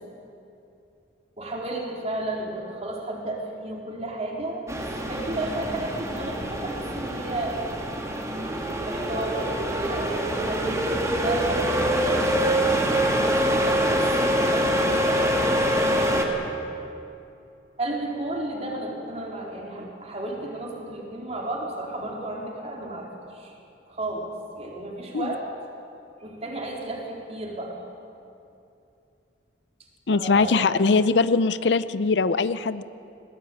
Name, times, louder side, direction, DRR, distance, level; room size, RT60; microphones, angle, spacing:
voice 1, 1.4-7.6 8.8-12.7 13.1-14.1 14.4-16.3 17.8-23.6 23.9-25.5 26.2-27.8 30.1-30.8, right 1 dB, 40° right, -2 dB, 4.0 m, -33 dB
sound 1, 4.7-16.3, equal, 20° right, 2.2 m, -25 dB
voice 2, 30.1-32.8, left 4 dB, 75° left, 15 dB, 0.6 m, -21 dB
20.5 x 17.0 x 8.7 m, 2.7 s
head